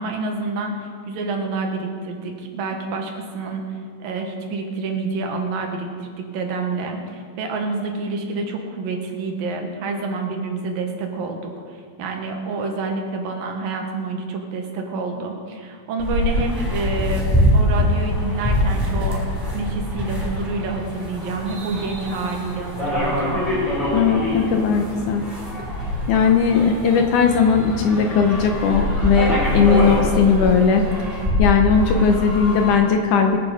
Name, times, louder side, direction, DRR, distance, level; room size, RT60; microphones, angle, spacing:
voice 1, 0.0-23.4, right 3 dB, 75° right, 2 dB, 3.1 m, -28 dB
sound 1, 16.0-32.7, left 1 dB, 5° left, 4.5 m, -23 dB
voice 2, 23.9-25.2 26.1-30.8 31.4-33.4, left 6 dB, 70° left, 4 dB, 2.0 m, -18 dB
22.0 x 9.2 x 5.0 m, 2.1 s
omnidirectional pair, 4.2 m